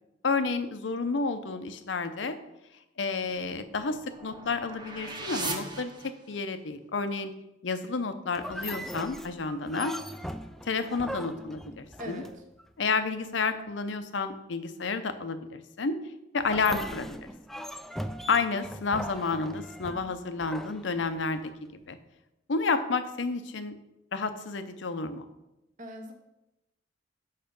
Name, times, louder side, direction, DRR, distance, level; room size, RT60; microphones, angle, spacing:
voice 1, 0.2-2.4 3.0-5.9 6.3-7.3 7.6-10.0 10.7-12.2 12.8-16.0 16.3-17.3 18.3-22.0 22.5-23.7 24.1-25.3, left 4 dB, 75° left, 10 dB, 0.7 m, -30 dB
sound 1, 3.2-6.6, right 3 dB, 25° right, 0.9 m, -39 dB
sound 2, 8.4-12.7 16.4-21.5, equal, ahead, 0.3 m, -40 dB
voice 2, 25.8-26.1, equal, 45° right, 3 dB, 0.8 m, -39 dB
6.6 x 5.7 x 5.3 m, 0.94 s
head